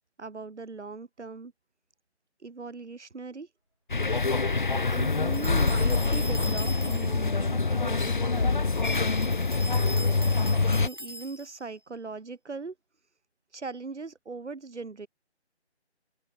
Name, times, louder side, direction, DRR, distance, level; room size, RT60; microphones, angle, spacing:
voice 1, 0.2-1.5 2.4-3.5 4.9-8.6 10.8-12.8 13.5-15.1, right 4 dB, 85° right, 1.8 m, -39 dB
sound 1, 3.9-10.9, left 3 dB, 45° left, 0.7 m, -25 dB
sound 2, 5.3-7.3 8.8-11.7, equal, 20° right, 0.8 m, -41 dB
open air
figure-of-eight pair, 175°, 34 cm